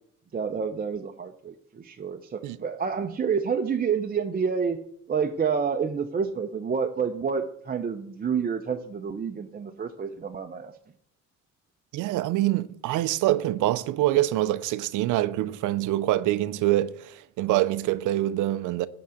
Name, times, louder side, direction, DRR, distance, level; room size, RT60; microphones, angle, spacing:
voice 1, 0.3-4.8 5.1-10.7, right 6 dB, 30° right, 0.6 m, -28 dB
voice 2, 11.9-18.9, right 15 dB, 85° right, 0.5 m, -25 dB
11.5 x 3.8 x 7.6 m
cardioid pair, 90°, 30 cm